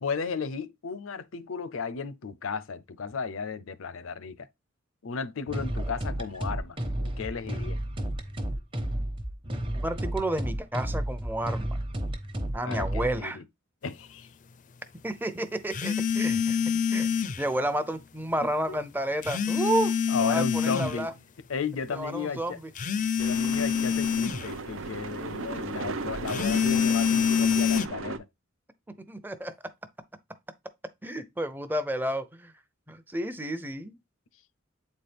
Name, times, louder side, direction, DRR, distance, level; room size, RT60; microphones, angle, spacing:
voice 1, 0.0-4.5 5.0-6.8 7.2-7.8 12.6-13.4 13.8-14.3 18.4-18.8 20.1-21.1 21.5-22.6 23.1-28.3, left 5 dB, 90° left, 0.6 m, -34 dB
sound 1, 5.5-13.2, right 1 dB, 25° right, 1.0 m, -32 dB
voice 2, 9.8-11.8 12.5-13.4 15.0-16.6 16.9-21.1 21.9-22.6 29.1-29.5 31.0-32.5 32.9-34.0, right 1 dB, 10° right, 0.6 m, -31 dB
sound 2, 15.7-17.5 19.2-20.9 22.8-24.5 26.3-27.9, left 7 dB, 40° left, 0.4 m, -26 dB
sound 3, 23.2-28.2, right 4 dB, 70° right, 0.7 m, -36 dB
8.3 x 4.2 x 3.4 m
head